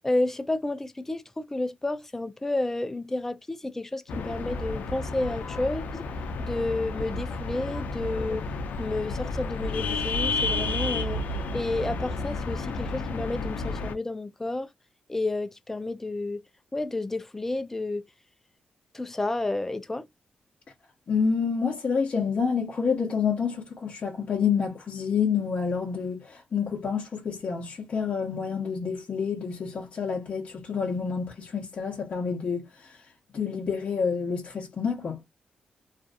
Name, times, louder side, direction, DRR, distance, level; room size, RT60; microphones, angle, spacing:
voice 1, 0.0-6.1 6.4-8.4 8.8-11.2 11.5-14.7 15.1-16.4 16.7-18.0 18.9-20.1, left 2 dB, 15° left, 0.4 m, -31 dB
sound 1, 4.1-13.9, left 3 dB, 80° left, 0.5 m, -31 dB
voice 2, 21.1-33.0 33.3-35.2, left 6 dB, 45° left, 0.8 m, -28 dB
2.5 x 2.5 x 2.3 m
wide cardioid pair, 125°, 3 cm